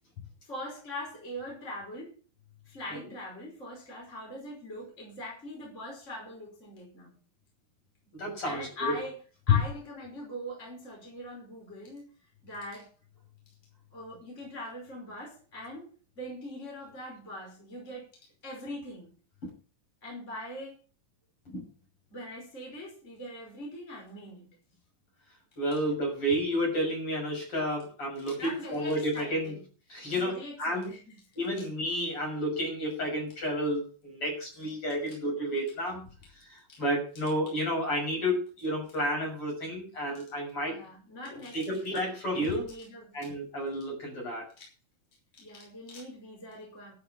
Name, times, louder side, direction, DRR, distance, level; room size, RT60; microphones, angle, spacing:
voice 1, 0.4-2.1 2.7-7.1 8.4-9.2 9.5-12.1 12.4-12.9 13.9-15.8 16.2-18.1 18.4-19.1 20.0-20.8 22.1-24.5 28.3-29.6 30.1-31.2 31.6-31.7 36.7-36.8 40.7-43.3 44.6-44.7 45.3-46.9, left 1 dB, 15° left, -2 dB, 5.4 m, -42 dB
voice 2, 8.1-8.9 9.5-9.6 19.4-19.5 21.5-21.6 25.6-29.6 29.9-30.9 31.4-36.1 36.5-40.8 41.5-42.7 43.1-44.5, equal, 30° left, -1 dB, 7.2 m, -31 dB
12.0 x 8.5 x 8.6 m, 0.39 s
omnidirectional pair, 4.8 m